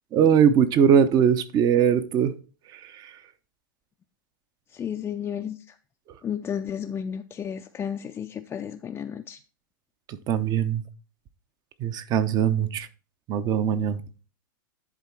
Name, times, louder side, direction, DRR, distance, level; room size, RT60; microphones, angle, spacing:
voice 1, 0.1-2.3 2.7-3.1 10.1-10.8 11.8-12.9 13.3-14.0, right 8 dB, 35° right, 0.8 m, -21 dB
voice 2, 4.7-5.8 6.2-9.4, left 8 dB, 20° left, 0.4 m, -33 dB
10.5 x 3.7 x 4.6 m
hypercardioid pair, 105°, 12 cm